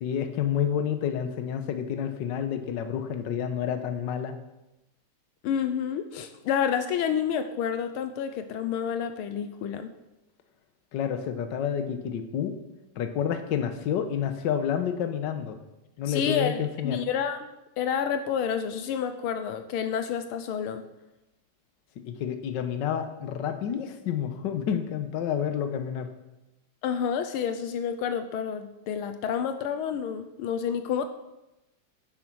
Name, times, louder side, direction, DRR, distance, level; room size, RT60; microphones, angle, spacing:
voice 1, 0.0-4.3 10.9-12.5 13.0-15.6 16.0-17.0 22.1-26.1, left 8 dB, 65° left, 8 dB, 1.4 m, -29 dB
voice 2, 5.4-9.9 16.1-17.5 17.8-20.8 26.8-31.1, left 8 dB, 80° left, 9 dB, 1.5 m, -29 dB
9.8 x 7.6 x 6.1 m, 0.96 s
omnidirectional pair, 2.4 m